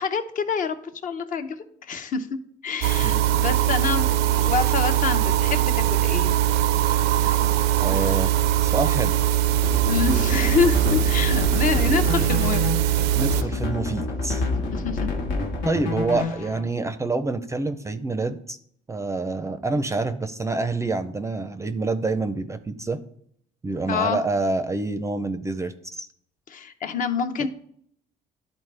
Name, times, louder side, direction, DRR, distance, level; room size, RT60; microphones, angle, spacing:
voice 1, 0.0-2.4 2.6-6.3 7.2-7.5 7.9-8.1 9.9-12.7 13.4-13.5 14.7-15.1 23.9-24.2 26.5-27.5, left 6 dB, 50° left, 9 dB, 0.7 m, -27 dB
sound 1, 2.8-13.4, right 12 dB, 80° right, 0.4 m, -21 dB
voice 2, 7.8-8.3 8.6-9.2 13.1-14.5 15.6-18.6 18.9-23.0 23.6-26.1, right 3 dB, 15° right, 10 dB, 0.4 m, -27 dB
sound 2, 9.5-16.6, left 3 dB, 90° left, 1.4 m, -28 dB
11.5 x 4.2 x 3.3 m, 0.66 s
cardioid pair, 110°, 17 cm